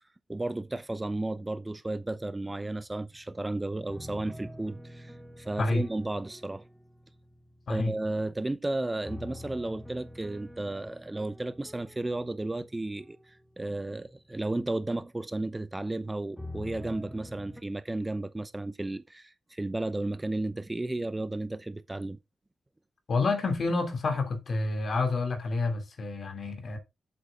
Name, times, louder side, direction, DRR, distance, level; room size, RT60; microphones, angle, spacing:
voice 1, 0.3-6.6 7.7-22.2, right 2 dB, 15° right, 0.6 m, -33 dB
sound 1, 2.9-3.5 3.9-8.4 9.0-14.7 16.4-17.6, left 1 dB, 5° left, 1.1 m, -46 dB
voice 2, 23.1-26.8, left 3 dB, 50° left, 3.0 m, -28 dB
8.4 x 7.9 x 3.7 m
cardioid pair, 105°, 0 cm